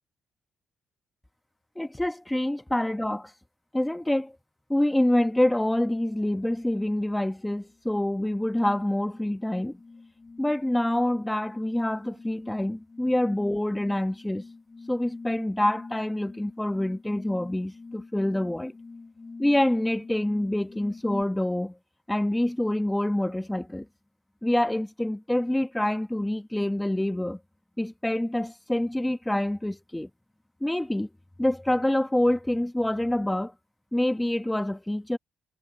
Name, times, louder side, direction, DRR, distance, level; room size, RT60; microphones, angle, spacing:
voice 1, 1.8-3.3 3.7-4.3 4.7-9.8 10.4-14.4 14.9-18.7 19.4-21.7 22.1-23.9 24.4-27.4 27.8-30.1 30.6-31.1 31.4-33.5 33.9-35.2, left 1 dB, 10° left, 1.2 m, -26 dB
sound 1, 5.7-6.0 6.4-21.2, left 3 dB, 25° left, 2.5 m, -46 dB
cardioid pair, 90°, 0 cm